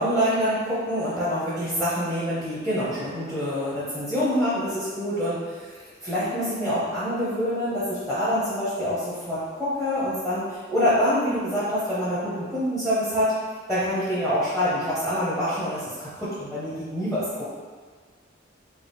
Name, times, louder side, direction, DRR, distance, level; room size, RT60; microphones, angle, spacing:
voice 1, 0.0-13.3 13.7-17.4, equal, 5° right, -12 dB, 0.8 m, -26 dB
3.9 x 2.3 x 3.4 m, 1.5 s
head